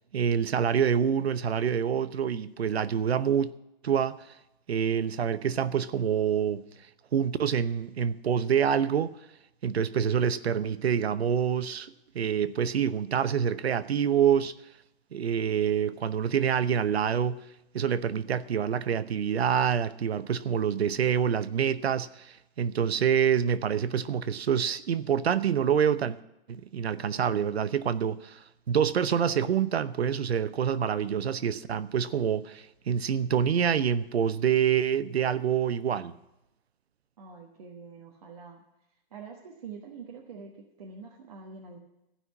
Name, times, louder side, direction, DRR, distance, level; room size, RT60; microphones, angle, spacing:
voice 1, 0.1-3.5 3.8-4.3 4.7-6.6 7.1-9.2 9.6-14.5 15.1-17.4 17.7-26.2 26.5-36.2, right 8 dB, 90° right, 0.9 m, -26 dB
voice 2, 37.2-38.6 39.1-41.8, right 5 dB, 40° right, 1.3 m, -45 dB
15.5 x 5.8 x 9.5 m
hypercardioid pair, 175°, 30 cm